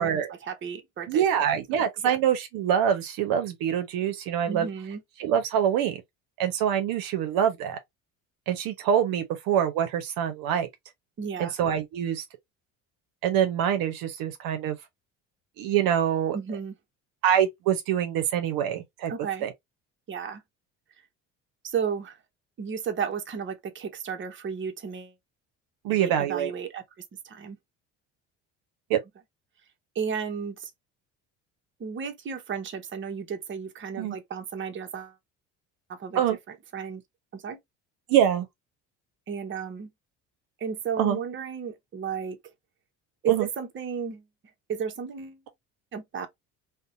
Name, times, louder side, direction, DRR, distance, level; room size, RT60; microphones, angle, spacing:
voice 1, 0.0-1.2 2.0-2.2 4.5-5.0 11.2-11.5 16.3-16.7 19.1-19.5 20.1-20.4 21.6-22.2 22.6-25.1 25.9-26.8 27.2-27.6 29.9-30.7 31.8-35.1 35.9-36.2 36.5-37.0 37.3-37.6 39.3-39.9 40.6-42.4 43.2-44.2 44.7-45.4 45.9-46.3, right 7 dB, 30° right, 0.7 m, -33 dB
voice 2, 1.1-4.7 5.2-6.0 6.4-7.8 8.5-10.7 11.4-12.2 13.2-14.8 15.6-16.4 17.2-19.1 19.4-19.5 25.8-26.5 28.9-29.0 34.0-34.2 36.2-36.4 38.1-38.5 41.0-41.2 43.3-43.5, right 9 dB, 65° right, 0.7 m, -25 dB
2.6 x 2.1 x 2.5 m
supercardioid pair, 70°, 37 cm